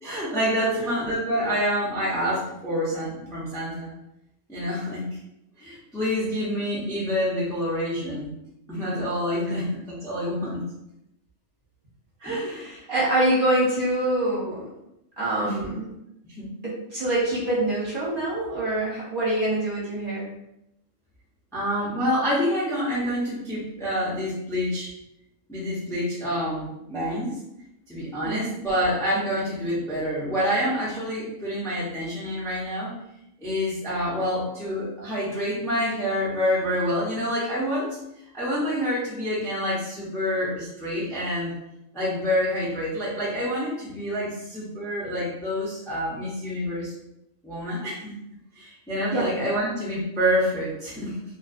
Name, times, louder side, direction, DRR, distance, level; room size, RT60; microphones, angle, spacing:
voice 1, 0.0-3.9 4.5-5.1 5.6-8.3 8.7-10.7 12.2-12.6 15.4-15.7 16.4-16.5 21.5-24.9 25.5-27.3 27.9-32.9 33.4-38.0 38.3-41.5 41.9-46.9 47.4-48.1 48.6-51.2, equal, 5° left, -8 dB, 0.5 m, -27 dB
voice 2, 12.2-14.7 15.2-15.8 16.6-20.3 28.2-28.5 49.1-49.3, right 1 dB, 45° right, -8 dB, 1.0 m, -25 dB
2.5 x 2.3 x 2.4 m, 0.85 s
omnidirectional pair, 1.4 m